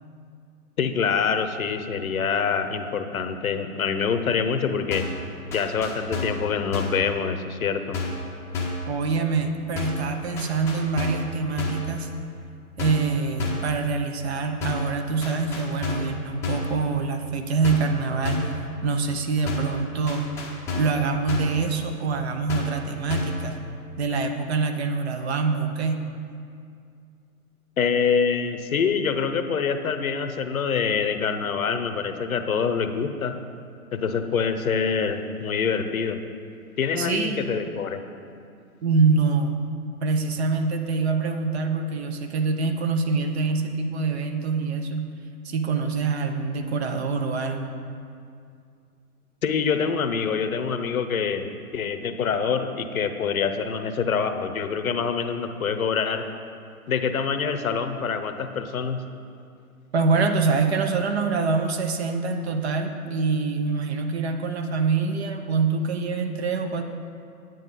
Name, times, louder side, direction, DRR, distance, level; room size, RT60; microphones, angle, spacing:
voice 1, 0.8-5.0 5.5-8.0 27.8-33.3 33.9-36.2 36.8-38.0 49.4-56.2 56.9-59.0, left 6 dB, 70° left, 8 dB, 0.9 m, -25 dB
sound 1, 4.9-5.2 5.5-6.4 6.7-7.0 7.9-8.3 8.5-8.9 9.8-10.1 10.4-11.3 11.6-11.9 12.8-13.1 13.4-13.7 14.6-14.9 15.2-16.1 16.4-16.7 17.6-18.0 18.2-18.6 19.5-19.8 20.1-21.0 21.3-21.6 22.5-22.8 23.1-23.4, left 3 dB, 5° left, 0.7 m, -30 dB
voice 2, 8.9-12.1 12.8-18.5 18.8-20.3 20.7-23.6 24.0-26.1 36.9-37.4 38.8-39.6 40.0-45.1 45.4-47.7 59.9-66.8, right 4 dB, 45° right, 6 dB, 0.8 m, -25 dB
9.2 x 9.0 x 4.0 m, 2.4 s
figure-of-eight pair, 130°, 44 cm